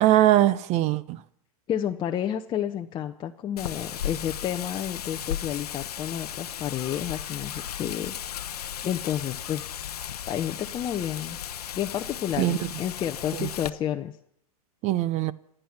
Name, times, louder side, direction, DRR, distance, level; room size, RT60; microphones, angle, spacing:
voice 1, 0.0-1.2 12.4-12.6 13.3-13.5 14.8-15.3, right 14 dB, 35° right, 0.6 m, -21 dB
voice 2, 1.7-8.1 8.8-9.8 10.3-11.4 11.7-14.1, left 10 dB, 25° left, 0.7 m, -30 dB
Wind, 3.6-13.7, left 10 dB, 80° left, 0.8 m, -35 dB
26.0 x 9.0 x 5.9 m
hypercardioid pair, 115°, 20 cm